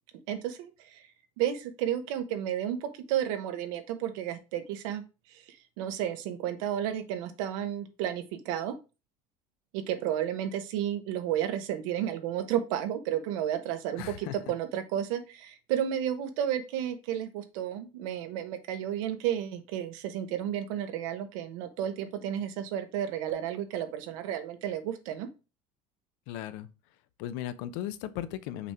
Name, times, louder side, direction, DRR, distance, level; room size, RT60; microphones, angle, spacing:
voice 1, 0.3-1.1 1.4-5.0 5.3-8.7 9.7-25.3, right 10 dB, 85° right, 1.1 m, -32 dB
voice 2, 14.0-14.4 26.3-26.7 27.2-28.7, left 12 dB, 75° left, 0.7 m, -36 dB
6.0 x 3.7 x 4.3 m
cardioid pair, 130°, 16 cm